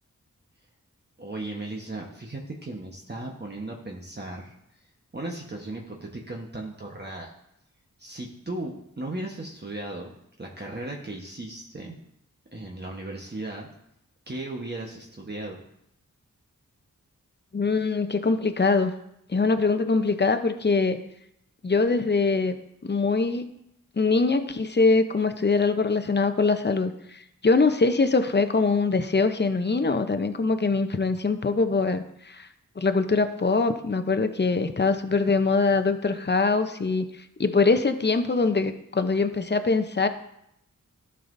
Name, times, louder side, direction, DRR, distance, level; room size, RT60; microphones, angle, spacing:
voice 1, 1.2-4.5 5.1-7.3 8.0-12.0 12.5-13.7 14.3-15.6, right 2 dB, 30° right, -1 dB, 1.2 m, -36 dB
voice 2, 17.5-18.9 19.3-21.0 21.6-22.6 22.8-23.5 24.0-32.5 32.8-37.1 37.4-40.1, left 4 dB, 30° left, 9 dB, 0.8 m, -23 dB
12.5 x 5.6 x 2.7 m, 0.78 s
cardioid pair, 40°, 32 cm